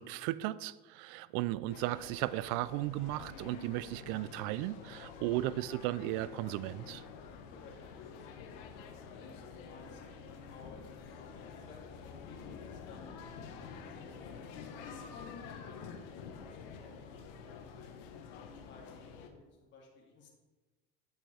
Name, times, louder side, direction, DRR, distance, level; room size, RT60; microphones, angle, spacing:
voice 1, 0.0-7.0, right 16 dB, 65° right, 19 dB, 0.4 m, -35 dB
voice 2, 1.1-1.5 7.3-13.1 13.7-17.2 17.5-18.0 18.6-20.3, left 3 dB, 40° left, -3 dB, 2.2 m, -58 dB
sound 1, 1.7-19.3, left 6 dB, 75° left, 1.1 m, -48 dB
9.1 x 7.4 x 3.4 m, 1.3 s
supercardioid pair, 110°, 29 cm